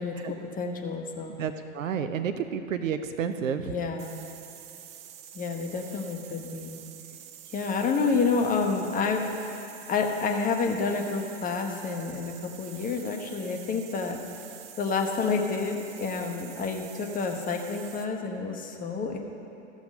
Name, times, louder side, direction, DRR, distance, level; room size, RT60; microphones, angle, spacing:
voice 1, 0.0-1.3 3.6-4.1 5.3-6.8 7.5-9.3 9.9-14.2 14.7-19.2, left 4 dB, 20° left, 3 dB, 1.0 m, -29 dB
voice 2, 1.4-3.7, right 7 dB, 75° right, 9 dB, 0.6 m, -30 dB
sound 1, 4.0-18.1, right 9 dB, 20° right, 0.4 m, -47 dB
13.5 x 6.2 x 5.4 m, 2.8 s
figure-of-eight pair, 95°, 39 cm